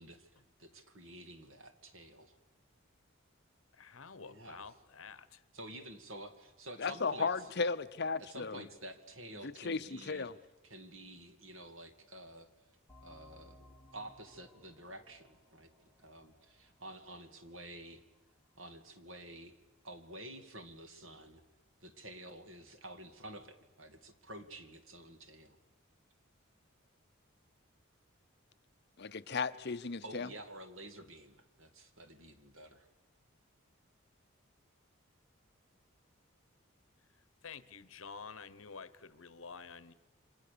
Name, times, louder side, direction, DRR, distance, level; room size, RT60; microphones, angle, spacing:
voice 1, 0.0-2.4 4.2-4.7 5.5-7.5 8.2-10.3 10.6-12.5 13.0-13.7 13.9-18.0 18.5-19.6 19.8-21.4 21.8-25.6 30.0-32.9, right 1 dB, 65° right, 2.5 m, -50 dB
voice 2, 3.7-5.4 37.4-39.9, left 5 dB, 70° left, 1.1 m, -49 dB
voice 3, 6.8-8.6 9.4-10.3 29.0-30.3, left 4 dB, 50° left, 0.8 m, -35 dB
sound 1, 12.9-18.2, left 1 dB, 5° left, 3.1 m, -62 dB
29.0 x 25.5 x 6.9 m
head